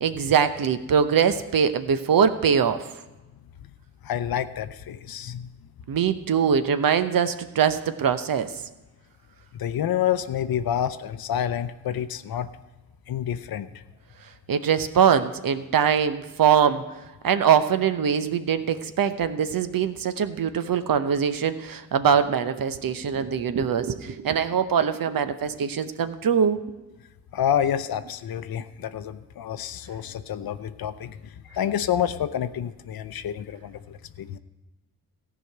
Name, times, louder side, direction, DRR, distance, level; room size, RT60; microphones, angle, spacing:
voice 1, 0.0-2.8 5.9-8.5 14.5-16.8 17.2-26.6, right 7 dB, 60° right, 11 dB, 0.9 m, -22 dB
voice 2, 4.0-5.5 9.5-12.5 13.1-13.7 27.3-34.4, left 9 dB, 65° left, 12 dB, 0.7 m, -28 dB
14.5 x 5.0 x 7.8 m, 1.1 s
supercardioid pair, 40°, 39 cm